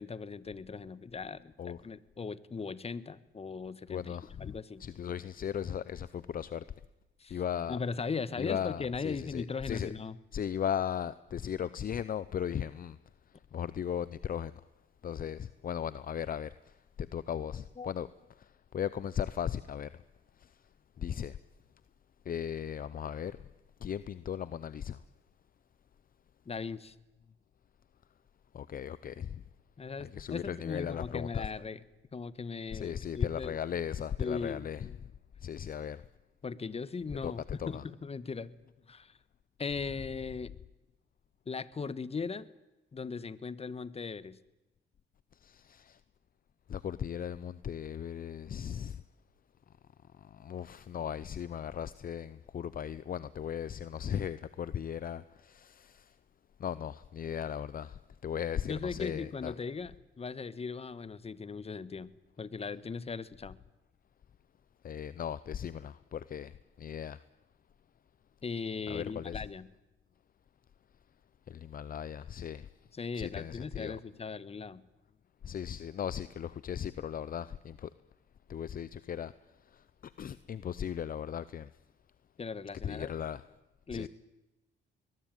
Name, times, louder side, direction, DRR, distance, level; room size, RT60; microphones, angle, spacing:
voice 1, 0.0-4.8 7.2-7.4 7.7-10.2 17.8-17.9 26.4-26.9 29.8-31.8 32.1-33.6 34.2-34.6 36.4-37.4 37.7-38.6 38.9-39.2 39.6-40.5 41.5-42.5 42.9-44.4 58.7-62.1 62.4-63.6 68.4-69.7 72.9-74.8 82.4-83.1 83.9-84.1, left 5 dB, 30° left, 1.3 m, -38 dB
voice 2, 3.9-4.5 4.8-6.6 7.3-7.8 8.4-9.9 10.3-13.0 13.5-14.6 15.0-18.1 18.4-20.0 20.4-20.6 21.0-21.4 22.2-23.4 23.8-25.0 28.5-29.4 30.0-31.5 32.7-35.0 35.4-36.0 37.2-37.8 45.4-46.0 46.7-49.0 50.2-56.2 56.6-59.5 64.8-67.2 68.9-69.4 71.5-72.7 73.1-74.0 75.4-77.9 78.5-79.3 79.6-81.7 82.8-83.4 83.9-84.1, left 9 dB, 45° left, 0.8 m, -37 dB
22.0 x 21.0 x 9.3 m
cardioid pair, 90°, 20 cm